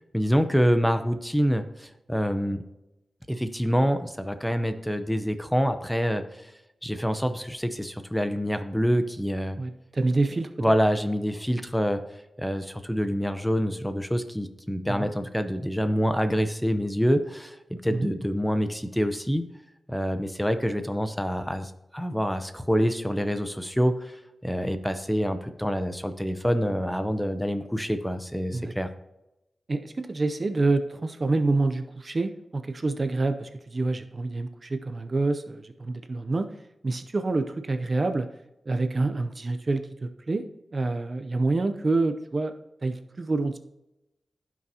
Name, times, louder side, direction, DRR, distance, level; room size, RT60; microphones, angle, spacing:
voice 1, 0.1-2.6 3.3-6.2 6.8-9.6 10.6-12.0 12.4-19.4 19.9-24.2 24.4-28.9, equal, ahead, 9 dB, 0.7 m, -26 dB
voice 2, 9.6-10.7 14.9-15.1 17.9-18.1 28.5-28.7 29.7-36.5 36.8-38.3 38.7-40.4 40.7-42.5 42.8-43.6, right 3 dB, 40° right, 8 dB, 0.6 m, -27 dB
15.0 x 6.1 x 2.8 m, 0.93 s
wide cardioid pair, 120°, 0 cm